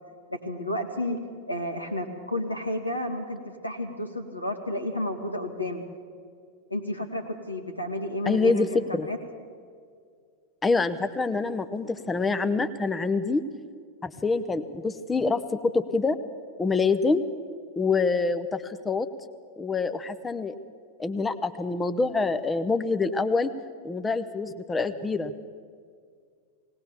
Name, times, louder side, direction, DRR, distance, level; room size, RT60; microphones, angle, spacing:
voice 1, 0.3-1.2 1.5-5.8 6.7-9.2, left 1 dB, 85° left, 4 dB, 2.1 m, -31 dB
voice 2, 8.3-9.1 10.6-13.4 14.0-16.2 16.6-17.2 17.8-19.1 19.6-20.6 21.0-23.5 23.8-25.3, left 4 dB, 15° left, 10 dB, 0.8 m, -26 dB
19.5 x 18.5 x 7.2 m, 2.1 s
figure-of-eight pair, 90°, 0 cm